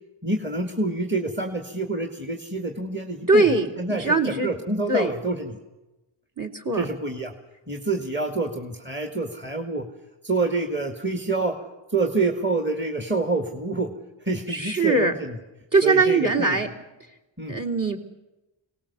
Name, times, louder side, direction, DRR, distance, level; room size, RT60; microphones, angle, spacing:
voice 1, 0.2-3.5 3.8-5.6 6.7-7.3 7.7-9.9 10.2-11.6 11.9-13.9 14.3-15.4 15.8-16.6 17.4-17.6, right 3 dB, 20° right, 4 dB, 2.3 m, -27 dB
voice 2, 3.3-4.5 4.9-5.1 6.4-6.8 14.5-15.1 15.7-16.7 17.5-18.0, right 3 dB, 40° right, 6 dB, 3.3 m, -21 dB
24.5 x 18.5 x 7.1 m, 1.0 s
wide cardioid pair, 55°, 50 cm